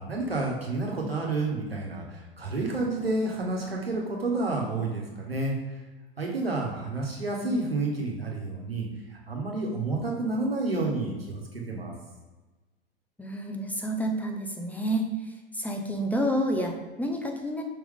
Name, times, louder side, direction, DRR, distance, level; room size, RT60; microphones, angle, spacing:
voice 1, 0.0-5.5 6.2-8.8 9.1-11.9, right 2 dB, 85° right, -1 dB, 1.4 m, -30 dB
voice 2, 13.2-15.1 15.5-17.6, equal, 5° left, 2 dB, 0.7 m, -29 dB
5.6 x 4.7 x 3.7 m, 1.2 s
figure-of-eight pair, 90°, 29 cm